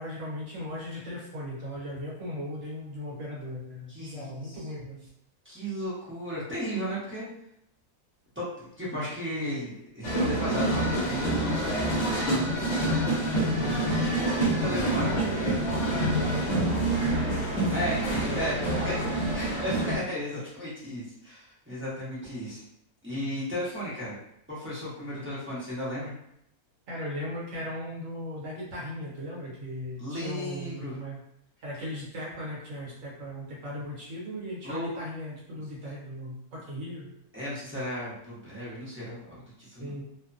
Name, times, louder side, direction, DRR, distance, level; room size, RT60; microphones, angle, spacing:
voice 1, 0.0-5.1 12.1-13.9 14.5-16.2 26.9-31.2 31.6-37.1 39.6-40.0, equal, 65° right, -5 dB, 1.3 m, -37 dB
voice 2, 3.9-4.6 5.4-7.3 8.3-11.4 14.2-15.1 17.1-19.0 19.3-22.6 23.0-24.2 24.5-26.1 30.0-31.0 34.6-35.0 37.3-39.9, equal, 10° right, -10 dB, 0.7 m, -35 dB
sound 1, 10.0-20.0, right 1 dB, 50° left, 0.8 m, -27 dB
2.8 x 2.1 x 2.5 m, 0.74 s
omnidirectional pair, 1.6 m